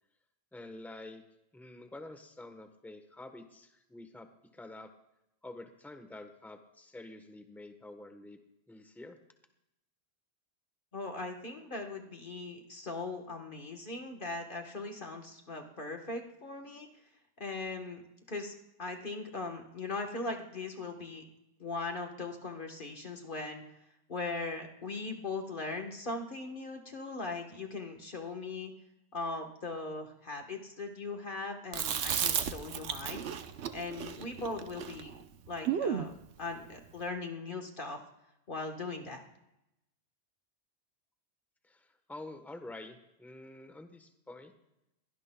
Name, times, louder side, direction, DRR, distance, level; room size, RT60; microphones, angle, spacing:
voice 1, 0.5-1.2 1.5-4.9 5.4-8.4 8.7-9.2 41.6-44.5, left 2 dB, ahead, 7 dB, 1.0 m, -48 dB
voice 2, 10.9-16.9 17.4-18.0 18.3-21.2 21.6-23.6 24.1-28.7 29.1-33.2 33.7-35.1 35.5-36.1 36.4-38.0 38.5-39.2, left 3 dB, 50° left, 2 dB, 1.5 m, -39 dB
Chewing mastication, 31.7-36.1, right 8 dB, 90° right, 1.1 m, -34 dB
22.0 x 17.5 x 2.3 m, 0.88 s
omnidirectional pair, 1.1 m